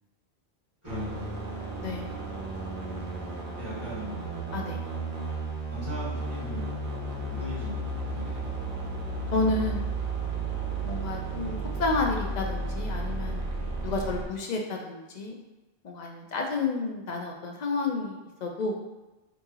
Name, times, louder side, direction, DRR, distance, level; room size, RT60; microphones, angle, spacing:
voice 1, 0.8-1.4 3.6-4.2 5.7-6.8 7.3-7.8 8.1-8.5, right 1 dB, 20° right, -10 dB, 1.3 m, -38 dB
sound 1, 0.9-14.3, right 2 dB, 60° right, 0.8 m, -33 dB
voice 2, 1.8-2.3 4.5-4.8 9.3-9.8 10.8-13.5 13.8-15.3 15.8-18.8, left 3 dB, 55° left, 1 dB, 0.5 m, -31 dB
2.8 x 2.7 x 3.6 m, 1.1 s
omnidirectional pair, 1.1 m